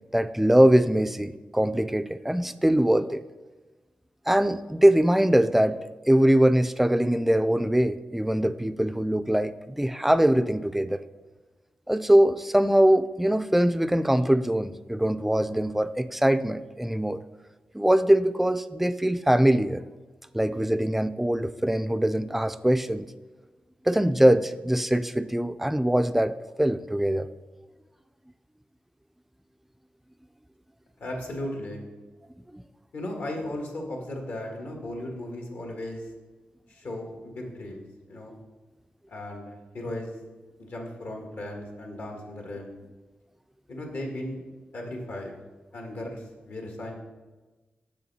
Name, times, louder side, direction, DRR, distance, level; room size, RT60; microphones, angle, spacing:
voice 1, 0.1-3.2 4.3-5.8 6.1-11.0 11.9-17.2 17.7-19.8 20.3-23.1 23.9-27.3 32.5-32.6, right 1 dB, 5° right, 12 dB, 0.3 m, -22 dB
voice 2, 31.0-31.9 32.9-36.0 36.7-38.4 39.1-40.1 40.6-42.8 43.7-44.4 44.7-45.3 45.7-46.9, left 1 dB, 70° left, 2 dB, 1.6 m, -36 dB
6.9 x 6.8 x 4.1 m, 1.2 s
cardioid pair, 80°, 3 cm